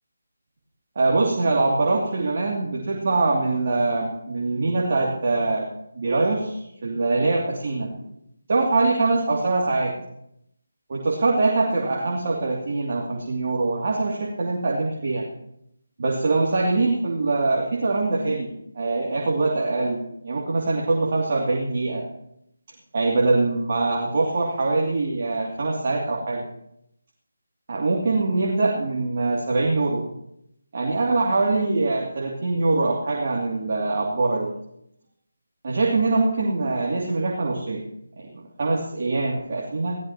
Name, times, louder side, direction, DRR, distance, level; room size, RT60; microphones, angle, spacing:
voice 1, 0.9-5.7 5.9-8.0 8.5-10.0 10.9-15.3 16.0-22.0 22.9-26.4 27.7-30.0 30.7-34.5 35.6-37.8 38.2-38.3 38.6-40.0, right 3 dB, 45° right, -3 dB, 2.7 m, -23 dB
19.0 x 16.5 x 3.0 m, 0.78 s
figure-of-eight pair, 155°, 0 cm